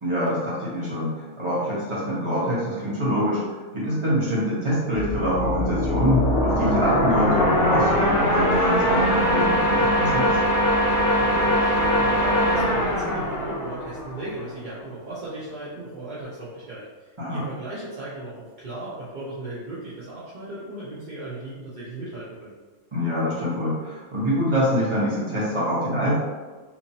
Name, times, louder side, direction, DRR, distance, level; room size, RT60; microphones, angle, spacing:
voice 1, 0.0-3.4 3.7-10.4 17.2-17.4 22.9-26.2, equal, 20° right, -8 dB, 1.1 m, -25 dB
sound 1, 4.9-14.5, equal, 55° left, 0.7 m, -22 dB
voice 2, 11.2-22.5, right 1 dB, 45° right, -8 dB, 0.6 m, -36 dB
3.5 x 3.0 x 2.7 m, 1.3 s
omnidirectional pair, 1.5 m